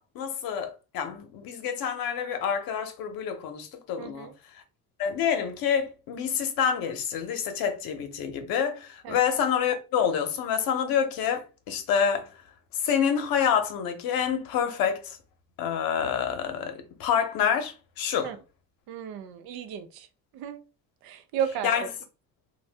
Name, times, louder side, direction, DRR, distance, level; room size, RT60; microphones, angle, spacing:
voice 1, 0.0-4.3 5.0-12.3 12.7-15.2 15.6-18.3 21.6-21.9, left 7 dB, 65° left, 0.8 m, -27 dB
voice 2, 4.0-4.3 9.0-9.2 18.2-18.4 18.9-20.1 20.3-20.6 21.0-21.7, right 9 dB, 75° right, 0.6 m, -34 dB
2.6 x 2.2 x 3.3 m
cardioid pair, 115°, 37 cm